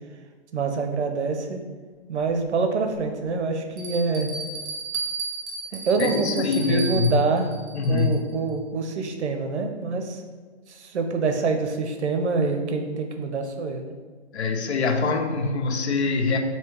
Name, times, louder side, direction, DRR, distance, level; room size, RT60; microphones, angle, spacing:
voice 1, 0.5-1.6 2.1-4.3 5.7-7.5 7.9-10.2 10.7-13.9, right 4 dB, 80° right, 5 dB, 0.7 m, -26 dB
Bell, 2.2-2.3 2.9-3.0 3.8-8.3, right 4 dB, 50° right, 0.9 m, -34 dB
voice 2, 6.0-7.3 7.7-8.3 14.3-16.4, left 4 dB, 75° left, 5 dB, 0.7 m, -24 dB
3.4 x 2.8 x 4.4 m, 1.5 s
hypercardioid pair, 165°, 34 cm